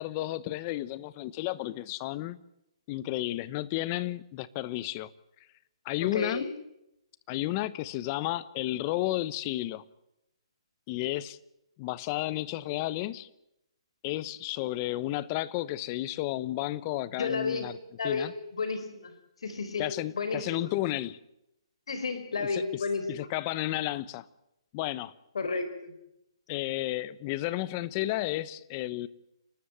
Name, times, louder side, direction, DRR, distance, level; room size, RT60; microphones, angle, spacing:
voice 1, 0.0-2.4 2.9-5.1 5.8-6.5 7.3-9.8 10.9-11.4 11.8-13.3 14.0-17.8 18.0-18.3 19.8-21.2 22.4-22.6 23.1-24.3 24.7-25.1 26.5-29.1, left 16 dB, 25° left, 0.9 m, -32 dB
voice 2, 6.0-6.4 17.2-17.7 18.0-19.1 19.4-19.9 20.1-20.7 21.9-23.3 25.3-25.9, left 4 dB, 70° left, 4.3 m, -32 dB
29.5 x 13.0 x 9.1 m
hypercardioid pair, 160°, 3 cm